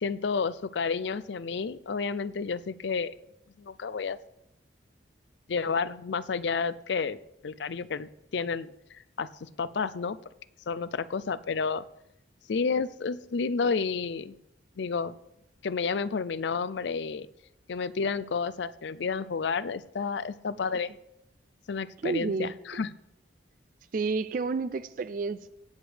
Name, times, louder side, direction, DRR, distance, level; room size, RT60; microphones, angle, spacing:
voice 1, 0.0-3.1 3.6-4.2 5.5-7.2 7.4-8.7 9.2-9.3 9.6-10.2 10.7-11.8 12.5-14.3 14.8-15.1 15.6-17.3 17.7-20.9 21.7-22.9, left 5 dB, 70° left, 16 dB, 0.4 m, -30 dB
voice 2, 22.0-22.8 23.9-25.5, right 4 dB, 45° right, 13 dB, 0.3 m, -31 dB
17.5 x 8.1 x 3.4 m, 0.81 s
head